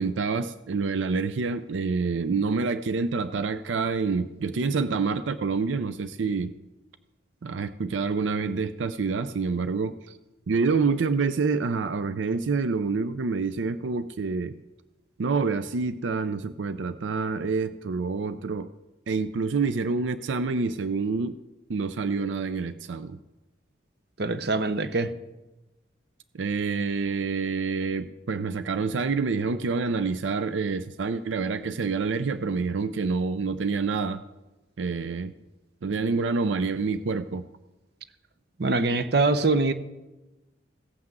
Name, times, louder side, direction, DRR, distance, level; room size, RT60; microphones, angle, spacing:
voice 1, 0.0-6.5 7.4-10.2 10.5-14.6 15.2-18.7 19.1-21.4 21.7-23.2 26.3-34.2 34.8-35.3 35.8-37.5, right 4 dB, 90° right, 0.5 m, -27 dB
voice 2, 24.2-25.1 38.6-39.7, right 3 dB, 60° right, 0.7 m, -23 dB
16.5 x 5.9 x 7.6 m
head